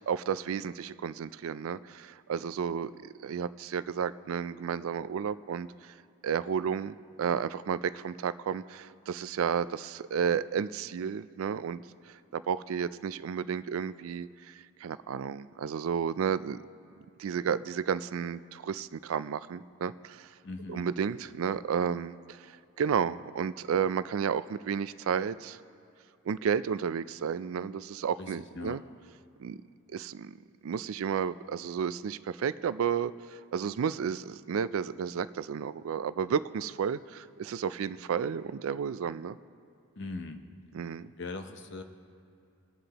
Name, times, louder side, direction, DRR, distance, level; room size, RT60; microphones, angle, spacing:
voice 1, 0.1-5.9 6.2-16.6 17.2-20.3 20.7-25.6 26.3-28.8 29.4-29.6 29.9-30.4 30.6-39.4 40.7-41.1, right 7 dB, 75° right, 15 dB, 0.3 m, -32 dB
voice 2, 20.4-20.9 28.2-28.8 40.0-40.4 41.2-41.8, left 3 dB, 55° left, 7 dB, 0.7 m, -40 dB
22.5 x 8.0 x 2.9 m, 2.6 s
head